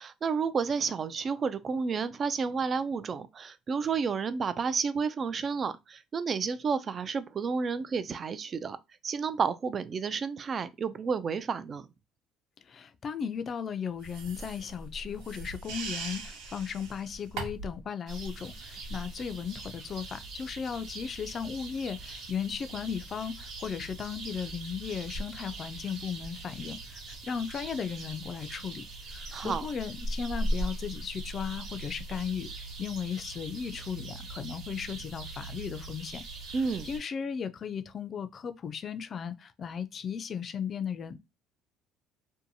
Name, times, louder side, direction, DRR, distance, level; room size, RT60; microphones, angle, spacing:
voice 1, 0.0-8.8 9.0-11.9 29.3-29.6 36.5-36.9, right 5 dB, 40° right, 0.3 m, -31 dB
voice 2, 12.6-36.2 36.5-41.3, left 7 dB, 40° left, 0.3 m, -36 dB
sound 1, 14.0-17.8, right 4 dB, 85° right, 0.7 m, -40 dB
sound 2, 18.1-37.0, right 1 dB, 65° right, 1.1 m, -40 dB
2.7 x 2.2 x 2.7 m
supercardioid pair, 90°, 0 cm